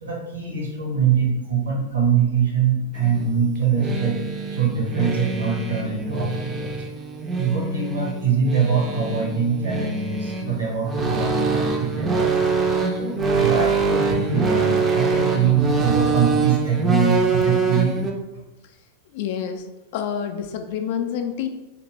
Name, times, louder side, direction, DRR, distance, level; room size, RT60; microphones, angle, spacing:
voice 1, 0.0-4.2 4.5-6.8 7.4-12.4 12.9-18.0, right 6 dB, 70° right, -1 dB, 0.9 m, -23 dB
sound 1, 3.0-18.1, right 4 dB, 20° right, 0.4 m, -24 dB
voice 2, 19.1-19.7 19.9-21.5, left 8 dB, 50° left, 6 dB, 0.3 m, -27 dB
2.6 x 2.5 x 3.1 m, 1.0 s
figure-of-eight pair, 90°, 0 cm